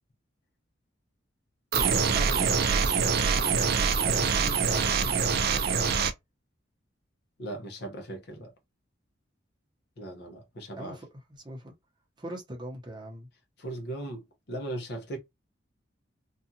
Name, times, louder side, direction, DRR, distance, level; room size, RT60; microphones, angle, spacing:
voice 1, 1.7-5.9 10.8-11.7 12.2-13.3, right 1 dB, 25° right, 0.7 m, -42 dB
sound 1, 1.7-6.1, right 6 dB, 55° right, 0.4 m, -25 dB
voice 2, 7.4-8.5 10.0-11.0 13.6-15.2, right 1 dB, 60° left, 0.8 m, -38 dB
2.6 x 2.3 x 2.7 m
head